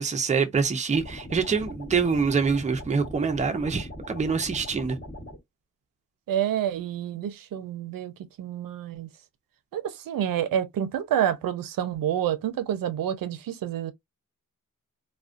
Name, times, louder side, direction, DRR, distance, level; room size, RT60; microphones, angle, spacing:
voice 1, 0.0-5.0, right 5 dB, 20° right, 0.5 m, -25 dB
sound 1, 0.9-5.4, equal, 30° left, 1.2 m, -40 dB
voice 2, 6.3-8.1 8.4-9.1 9.7-13.9, right 10 dB, 85° right, 0.5 m, -28 dB
2.3 x 2.1 x 2.4 m
wide cardioid pair, 100°, 33 cm